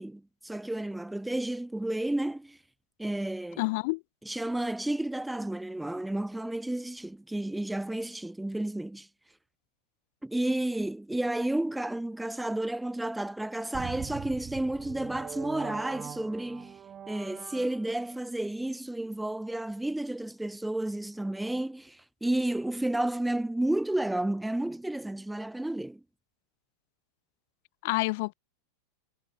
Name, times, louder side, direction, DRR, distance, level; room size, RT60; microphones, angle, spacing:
voice 1, 0.0-2.6 3.0-3.6 4.3-9.1 10.2-16.8 17.1-26.0, right 1 dB, 5° right, 2.4 m, -31 dB
voice 2, 3.6-4.0 27.8-28.3, left 25 dB, 50° left, 5.5 m, -28 dB
sound 1, 13.7-18.2, right 9 dB, 25° right, 3.8 m, -42 dB
figure-of-eight pair, 90°, 0 cm